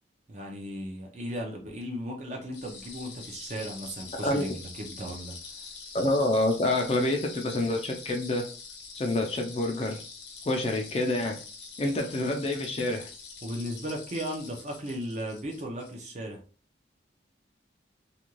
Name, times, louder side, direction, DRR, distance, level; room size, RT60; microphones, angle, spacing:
voice 1, 0.3-5.4 12.1-12.3 13.4-16.4, equal, 40° right, 2 dB, 0.6 m, -36 dB
sound 1, 2.5-15.9, left 5 dB, 70° left, 0.9 m, -45 dB
voice 2, 4.1-4.5 5.9-8.5 8.9-10.0 10.5-11.4 11.8-13.1, left 1 dB, 30° left, 3 dB, 0.4 m, -27 dB
2.5 x 2.2 x 3.0 m, 0.39 s
head